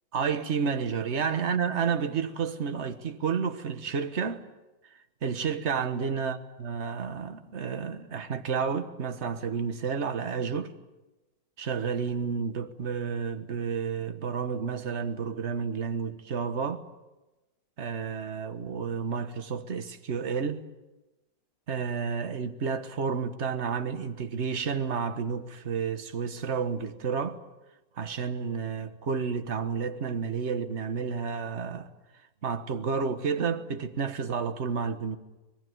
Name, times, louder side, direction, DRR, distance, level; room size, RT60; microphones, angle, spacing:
voice 1, 0.1-4.4 5.2-10.7 11.6-16.8 17.8-20.6 21.7-27.4 28.0-31.9 32.4-35.2, right 6 dB, 40° right, 1.5 m, -31 dB
26.0 x 20.0 x 9.5 m
omnidirectional pair, 2.0 m